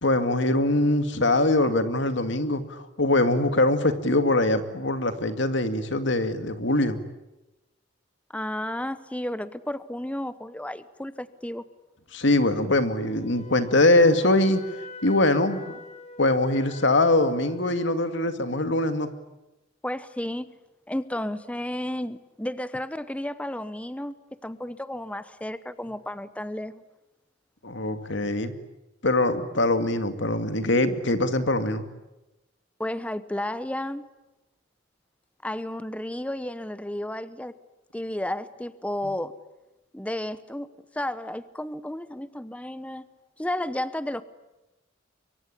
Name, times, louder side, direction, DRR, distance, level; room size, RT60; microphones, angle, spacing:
voice 1, 0.0-7.0 12.1-14.6 15.0-15.7 16.2-19.1 27.6-28.5 29.0-31.8, left 2 dB, 70° left, 9 dB, 2.3 m, -23 dB
voice 2, 8.3-11.6 19.8-20.5 20.9-24.1 24.4-26.8 32.8-34.1 35.4-37.6 37.9-39.3 39.9-43.1 43.4-44.2, left 1 dB, 5° left, 14 dB, 0.9 m, -32 dB
Wind instrument woodwind instrument, 13.0-17.7, left 1 dB, 35° left, 3.0 m, -44 dB
24.5 x 24.0 x 10.0 m, 1.0 s
head